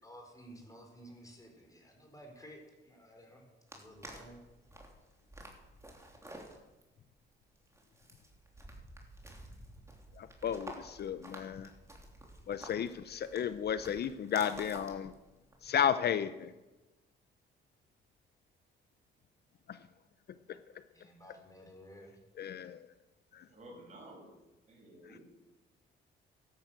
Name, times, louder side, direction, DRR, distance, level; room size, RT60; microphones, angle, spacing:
voice 1, 0.0-4.4 20.9-22.2, equal, 15° left, 2 dB, 4.3 m, -54 dB
sound 1, 3.7-15.8, right 1 dB, 15° right, 3.2 m, -51 dB
voice 2, 10.2-11.7 12.5-15.1 15.6-16.5 22.4-22.8 23.3-23.4, left 8 dB, 55° left, 13 dB, 0.7 m, -33 dB
voice 3, 23.5-24.2 24.7-25.2, right 1 dB, 35° right, 0 dB, 6.7 m, -52 dB
12.5 x 10.5 x 7.8 m, 1.1 s
cardioid pair, 90°, 20 cm